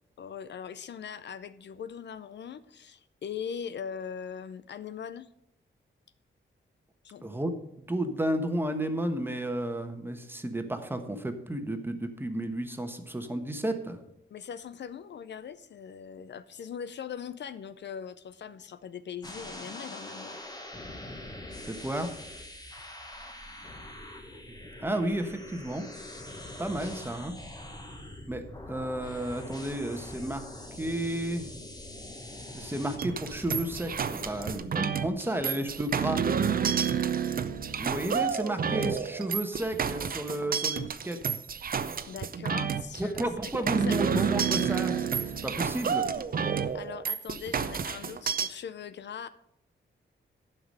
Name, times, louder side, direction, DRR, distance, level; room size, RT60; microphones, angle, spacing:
voice 1, 0.2-5.3 7.0-7.2 14.3-20.4 40.4-40.6 42.1-44.0 46.7-49.3, left 7 dB, 60° left, 14 dB, 0.5 m, -41 dB
voice 2, 7.8-14.0 21.7-22.1 24.8-25.9 26.6-27.3 28.3-28.4 28.7-30.5 30.8-31.5 32.5-36.3 37.6-41.2 43.0-46.1, right 1 dB, 10° right, 7 dB, 1.2 m, -32 dB
sound 1, 19.2-34.6, left 1 dB, 20° left, 1.4 m, -43 dB
sound 2, 33.0-48.5, right 7 dB, 45° right, 0.6 m, -30 dB
11.5 x 5.9 x 6.6 m, 0.79 s
wide cardioid pair, 130°, 20 cm